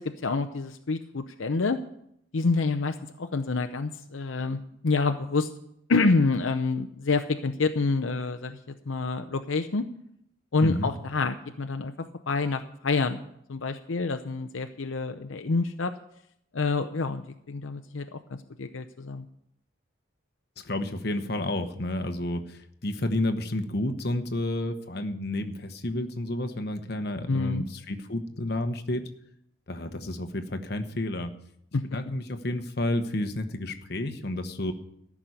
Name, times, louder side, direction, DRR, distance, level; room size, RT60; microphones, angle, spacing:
voice 1, 0.0-1.8 2.3-5.5 5.9-8.6 8.9-9.9 10.5-11.9 12.3-13.2 13.5-15.9 16.5-19.3 27.3-27.6 31.7-31.8, left 3 dB, 80° left, 7 dB, 0.7 m, -27 dB
voice 2, 10.6-10.9 20.6-29.0 29.7-31.3 31.9-34.7, left 1 dB, 55° left, 7 dB, 1.1 m, -30 dB
14.0 x 6.1 x 9.4 m, 0.73 s
head